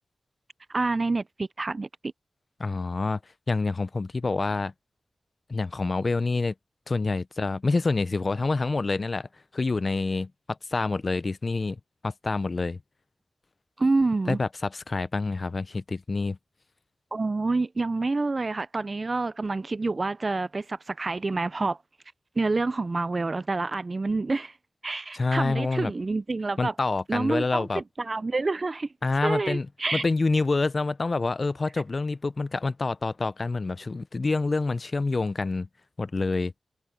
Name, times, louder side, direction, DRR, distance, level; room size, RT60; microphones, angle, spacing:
voice 1, 0.7-2.1 13.8-14.4 17.1-21.8 22.4-24.5 24.8-26.7 27.1-28.9 29.2-30.0, right 3 dB, 40° right, 0.4 m, -27 dB
voice 2, 2.6-3.2 3.5-4.7 5.5-6.5 6.9-9.3 9.5-12.8 14.3-16.4 25.1-25.9 26.6-27.8 29.0-35.7 36.0-36.5, left 3 dB, 45° left, 0.6 m, -27 dB
wide cardioid pair, 75°, 0 cm